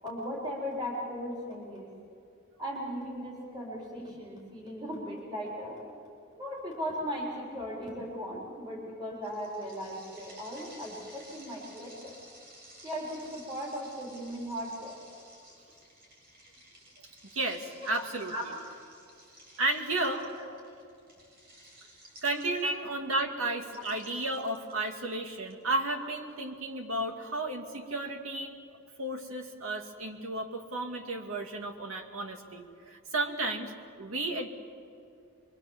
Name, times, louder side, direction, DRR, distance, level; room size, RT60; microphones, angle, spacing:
voice 1, 0.0-1.9 2.6-5.8 6.4-12.2 12.8-15.0 17.8-17.9 18.3-18.4 20.0-20.5 22.6-22.7, equal, 20° right, -4 dB, 4.4 m, -37 dB
sound 1, 9.2-22.9 23.6-25.5, right 1 dB, 50° right, 7.1 m, -54 dB
voice 2, 17.3-18.5 19.6-20.2 22.2-28.6 29.0-33.7 34.0-34.5, right 2 dB, 85° right, 3 dB, 2.4 m, -33 dB
24.5 x 24.0 x 7.4 m, 2.5 s
head